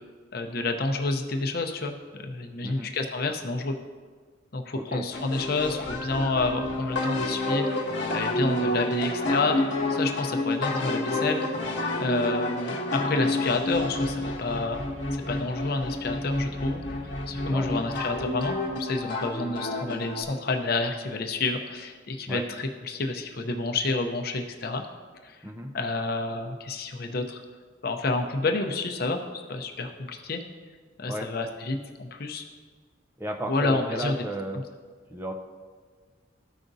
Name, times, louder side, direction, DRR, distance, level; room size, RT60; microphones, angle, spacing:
voice 1, 0.3-3.8 4.5-11.4 12.0-14.8 15.1-24.8 25.2-25.4 25.7-27.4 27.8-30.4 31.0-32.4 33.5-34.1 34.5-34.6, left 3 dB, 50° left, 4 dB, 0.6 m, -29 dB
voice 2, 2.6-2.9 4.7-5.1 17.5-17.7 22.3-22.4 25.4-25.7 31.1-31.3 33.2-34.6 35.1-35.3, right 1 dB, 10° right, 3 dB, 0.5 m, -34 dB
sound 1, 5.1-20.2, left 1 dB, 65° left, 1.1 m, -29 dB
13.5 x 5.0 x 2.6 m, 1.5 s
head